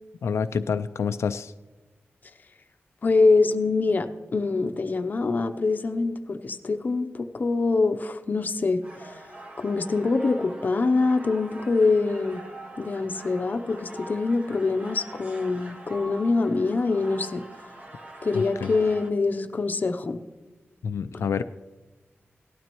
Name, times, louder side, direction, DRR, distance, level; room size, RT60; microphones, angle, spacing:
voice 1, 0.2-1.5 18.3-18.7 20.8-21.4, left 6 dB, 85° left, 10 dB, 0.3 m, -28 dB
voice 2, 3.0-4.1 4.3-9.2 9.6-12.4 12.8-17.4 18.2-20.2, left 3 dB, 40° left, 8 dB, 0.6 m, -24 dB
sound 1, 8.8-19.1, right 1 dB, 35° right, 1.0 m, -44 dB
17.5 x 12.5 x 3.0 m, 1.2 s
wide cardioid pair, 170°, 5 cm